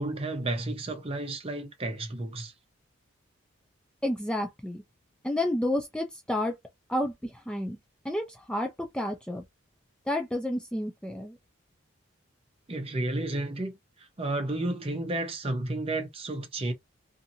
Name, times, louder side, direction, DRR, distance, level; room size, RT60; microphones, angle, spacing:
voice 1, 0.0-2.5 12.7-13.7 14.0-16.7, right 2 dB, 30° right, 0.7 m, -32 dB
voice 2, 4.0-4.8 5.2-6.5 6.9-7.8 8.0-9.4 10.1-11.4, left 1 dB, 5° left, 0.3 m, -30 dB
2.6 x 2.5 x 2.7 m
head